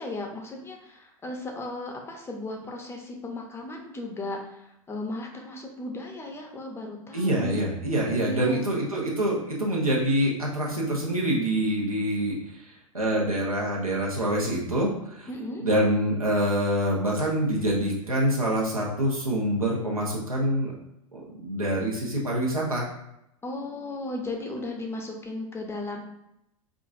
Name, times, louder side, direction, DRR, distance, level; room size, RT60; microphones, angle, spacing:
voice 1, 0.0-7.6 8.2-8.6 15.3-15.6 23.4-26.0, left 2 dB, 15° left, 1 dB, 0.7 m, -36 dB
voice 2, 7.1-12.6 12.9-15.3 15.6-20.7 21.1-22.9, right 1 dB, 85° right, -4 dB, 1.0 m, -26 dB
4.9 x 2.5 x 2.5 m, 0.82 s
figure-of-eight pair, 90°, 18 cm